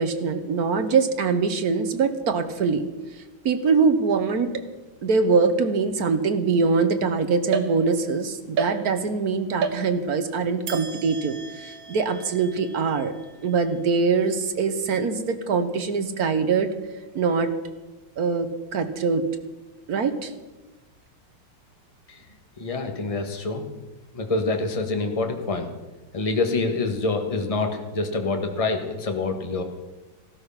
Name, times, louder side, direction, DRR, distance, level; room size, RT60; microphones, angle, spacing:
voice 1, 0.0-2.8 3.2-4.6 5.0-13.1 13.4-16.7 17.1-17.5 18.2-19.2 19.9-20.3, right 5 dB, 55° right, 9 dB, 1.4 m, -23 dB
sound 1, 7.5-8.2 8.6-9.2 9.6-10.3 10.7-14.1, right 5 dB, 70° right, 1.9 m, -33 dB
voice 2, 22.6-23.7 24.1-25.7 26.1-29.6, left 3 dB, 20° left, 4 dB, 1.4 m, -26 dB
15.5 x 12.5 x 5.8 m, 1.1 s
omnidirectional pair, 2.3 m